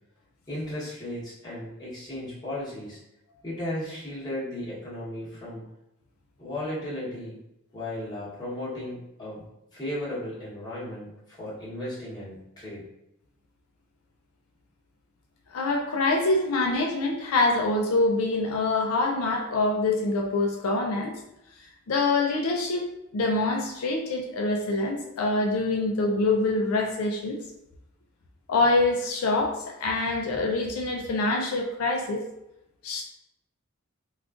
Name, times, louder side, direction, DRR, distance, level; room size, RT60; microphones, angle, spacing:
voice 1, 0.5-3.0 3.4-5.6 6.4-7.4 7.7-9.5 9.7-12.8, left 1 dB, 20° left, -8 dB, 1.0 m, -35 dB
voice 2, 15.5-21.2 21.9-27.4 28.5-32.2 32.8-33.0, left 2 dB, 75° left, 1 dB, 0.4 m, -25 dB
3.6 x 2.3 x 2.4 m, 0.87 s
head